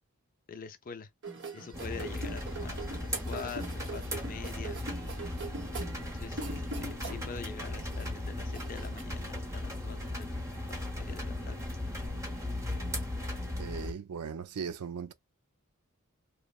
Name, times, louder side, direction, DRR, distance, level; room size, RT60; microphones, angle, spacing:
voice 1, 0.5-1.1 1.5-4.8 6.0-10.4 10.9-11.6, left 5 dB, 40° left, 0.4 m, -45 dB
sound 1, 1.2-7.4 7.7-9.0, right 3 dB, 50° right, 0.9 m, -42 dB
sound 2, 1.7-13.9, left 1 dB, 15° right, 0.8 m, -37 dB
voice 2, 13.6-15.1, right 6 dB, 90° right, 0.5 m, -38 dB
2.9 x 2.1 x 2.3 m
head